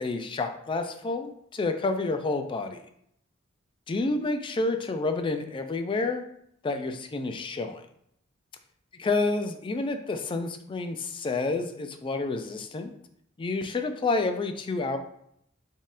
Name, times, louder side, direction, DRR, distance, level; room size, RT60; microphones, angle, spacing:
voice 1, 0.0-2.8 3.9-6.3 6.6-7.8 9.0-12.9 13.4-15.0, left 3 dB, 25° left, 7 dB, 0.3 m, -29 dB
4.2 x 3.6 x 2.5 m, 0.73 s
head